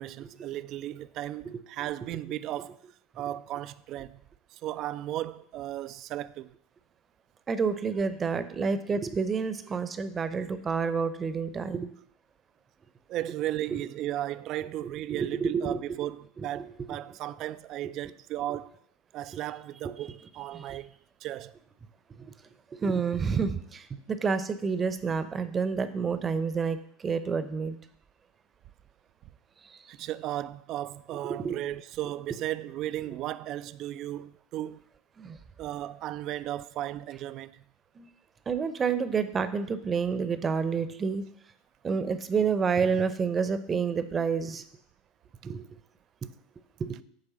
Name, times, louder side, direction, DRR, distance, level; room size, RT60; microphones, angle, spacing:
voice 1, 0.0-2.8 3.1-4.2 4.5-6.6 13.1-18.7 19.1-20.9 21.2-21.5 29.9-34.8 35.6-37.7, right 13 dB, 50° right, 0.4 m, -35 dB
voice 2, 7.5-11.9 15.1-15.8 16.4-16.7 19.8-19.9 20.5-20.8 22.2-22.3 22.7-27.8 29.6-29.8 31.3-31.6 35.2-35.4 37.9-38.1 38.5-41.2 41.8-44.6 45.4-45.7 46.8-47.0, right 5 dB, 25° right, 0.8 m, -29 dB
9.3 x 3.4 x 6.8 m
hypercardioid pair, 85°, 0 cm